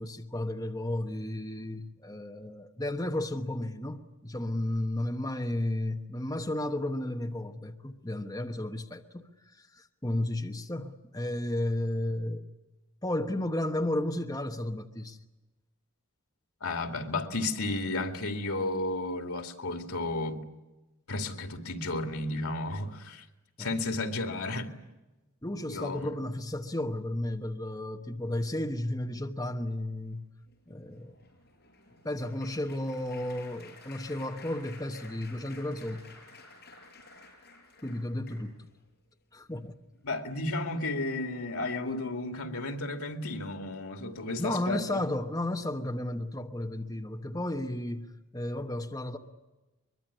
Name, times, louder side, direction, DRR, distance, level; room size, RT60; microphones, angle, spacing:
voice 1, 0.0-12.4 13.0-15.2 23.6-23.7 25.4-30.3 30.7-31.1 32.0-36.0 37.8-38.7 39.3-39.8 44.4-49.2, left 1 dB, 15° left, 1.1 m, -33 dB
voice 2, 16.6-20.4 21.1-23.2 23.6-24.7 25.7-26.1 40.0-45.0, left 2 dB, 90° left, 2.4 m, -33 dB
Applause, 30.5-38.8 39.4-39.7 39.9-40.1, left 3 dB, 45° left, 6.9 m, -53 dB
23.0 x 22.5 x 9.8 m
head